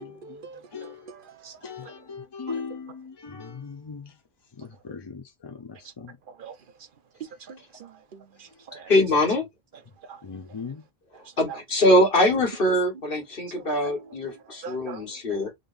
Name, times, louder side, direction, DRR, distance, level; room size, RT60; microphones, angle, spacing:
voice 1, 0.0-1.9 2.5-2.6 6.3-6.6 7.2-8.9 10.0-10.2 11.1-11.6 13.7-15.1, right 6 dB, 60° right, 0.8 m, -44 dB
voice 2, 0.7-1.1 1.6-4.1 4.6-6.1 10.2-10.8, left 5 dB, 35° left, 0.4 m, -38 dB
voice 3, 8.7-9.4 11.4-15.5, left 1 dB, 60° left, 1.6 m, -22 dB
3.8 x 3.3 x 2.5 m
omnidirectional pair, 1.0 m